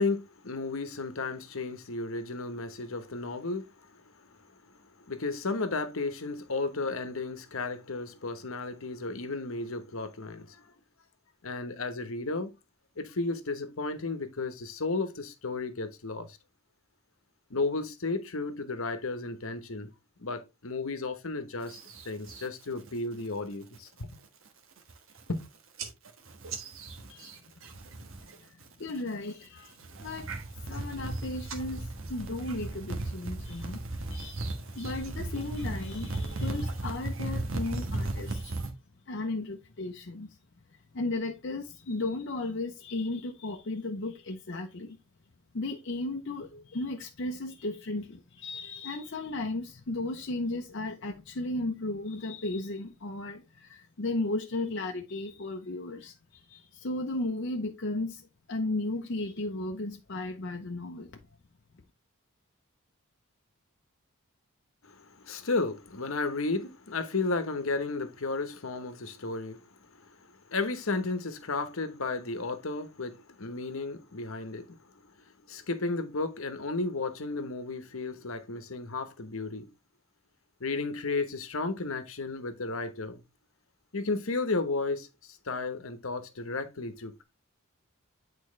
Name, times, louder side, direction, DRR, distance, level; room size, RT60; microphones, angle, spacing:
voice 1, 0.0-4.3 5.0-10.6 11.4-12.5 13.0-16.4 17.5-19.9 20.2-21.8 22.0-24.1 25.3-25.4 64.8-74.8 75.5-79.7 80.6-83.2 83.9-87.2, left 3 dB, 70° left, 1.1 m, -33 dB
sound 1, 21.7-22.5 22.9-23.3 23.6-24.0 24.5-24.6 24.8-25.4 25.8-28.3 28.6-29.1 29.6-38.7, right 2 dB, 65° right, 1.4 m, -36 dB
voice 2, 28.2-30.3 30.6-33.8 34.1-38.7 39.1-40.4 40.9-45.0 45.5-61.1, left 2 dB, 55° left, 0.7 m, -35 dB
8.7 x 4.4 x 3.2 m
head